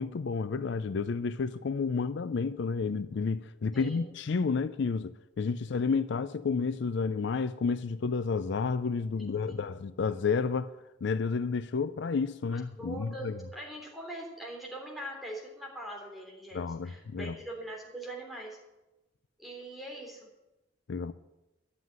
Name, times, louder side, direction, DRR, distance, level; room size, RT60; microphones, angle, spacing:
voice 1, 0.0-10.7 11.0-13.4 16.5-17.4 20.9-21.1, left 5 dB, 65° left, 0.4 m, -31 dB
voice 2, 3.7-4.1 9.2-9.6 12.5-18.6 19.4-20.3, right 1 dB, ahead, 3.1 m, -42 dB
11.5 x 7.7 x 9.4 m
head